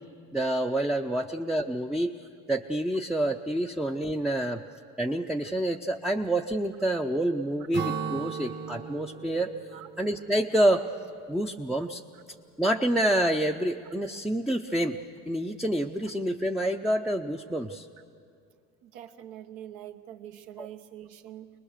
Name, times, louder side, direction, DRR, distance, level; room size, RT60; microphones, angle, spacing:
voice 1, 0.3-2.1 2.5-4.6 5.0-9.5 10.0-10.8 11.3-12.0 12.6-15.0 15.3-17.9 20.6-20.7, right 1 dB, ahead, 3 dB, 0.6 m, -27 dB
Acoustic guitar / Strum, 7.7-11.4, right 6 dB, 30° right, 1.3 m, -37 dB
voice 2, 18.8-21.5, right 11 dB, 75° right, 7 dB, 1.3 m, -44 dB
24.0 x 20.0 x 6.6 m, 2.3 s
supercardioid pair, 105°, 35 cm